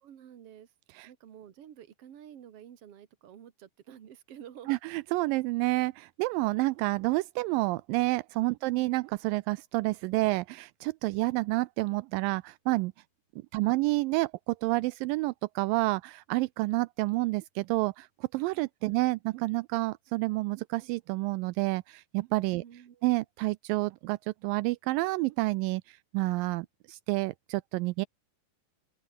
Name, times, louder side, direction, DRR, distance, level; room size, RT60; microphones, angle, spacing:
voice 1, 0.0-0.7 1.1-4.7 8.6-8.9 13.5-13.8 22.6-23.1, right 9 dB, 50° right, 2.4 m, -50 dB
voice 2, 4.7-12.9 13.5-18.1 18.3-22.6 23.0-28.1, right 21 dB, 85° right, 2.2 m, -29 dB
open air
omnidirectional pair, 4.0 m